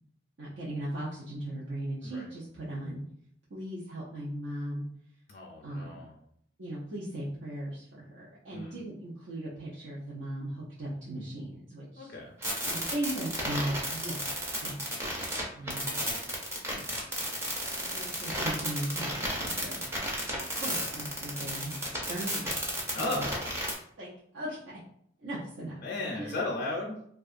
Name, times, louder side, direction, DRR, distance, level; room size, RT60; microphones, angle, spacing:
voice 1, 0.4-3.0 3.5-4.9 5.6-6.0 6.6-12.1 12.7-14.3 14.6-14.7 15.5-16.0 16.7-16.8 17.8-19.8 20.6-21.8 22.1-22.6 22.9-23.3 24.0-24.1 24.3-24.8 25.2-25.7 26.1-26.4, right 1 dB, 75° right, -7 dB, 0.6 m, -37 dB
voice 2, 5.3-6.2 8.5-8.8 11.9-12.3 22.9-23.4 25.8-27.1, left 2 dB, 50° left, -3 dB, 0.4 m, -35 dB
sound 1, 12.4-23.7, equal, 15° right, 0.4 m, -33 dB
2.7 x 2.3 x 2.4 m, 0.69 s
head